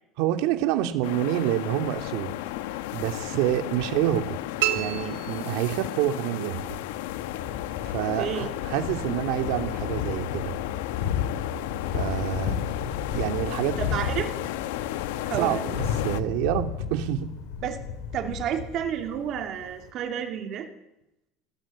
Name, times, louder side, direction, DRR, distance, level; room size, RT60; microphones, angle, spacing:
voice 1, 0.2-2.4 2.9-4.3 4.7-6.8 7.8-10.5 11.9-12.6 13.1-13.7 15.3-17.3, right 12 dB, 60° right, 6 dB, 2.7 m, -27 dB
sound 1, 1.0-16.2, left 15 dB, 85° left, 1.3 m, -34 dB
sound 2, 4.6-6.2, right 15 dB, 90° right, 3.8 m, -30 dB
Thunder, 6.6-19.9, left 7 dB, 65° left, 5.2 m, -33 dB
voice 2, 8.2-8.5 13.8-14.3 15.2-15.6 17.6-17.8 18.1-20.7, right 9 dB, 35° right, 5 dB, 3.0 m, -30 dB
29.5 x 19.5 x 8.7 m, 0.89 s
cardioid pair, 180°, 0 cm